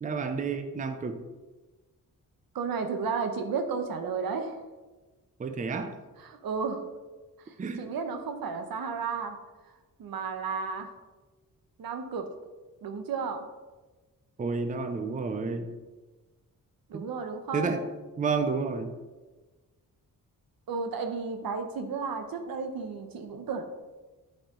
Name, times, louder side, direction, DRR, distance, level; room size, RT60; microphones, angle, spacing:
voice 1, 0.0-1.2 5.4-5.9 7.6-7.8 14.4-15.7 16.9-17.1 17.5-17.8 18.2-18.9, right 4 dB, 25° right, 8 dB, 0.5 m, -30 dB
voice 2, 2.5-4.6 6.2-6.8 7.5-9.4 10.0-10.9 11.8-12.3 12.8-13.5 16.9-17.8 20.7-23.6, right 5 dB, 85° right, 6 dB, 0.9 m, -33 dB
8.8 x 4.9 x 3.7 m, 1.2 s
wide cardioid pair, 145°, 34 cm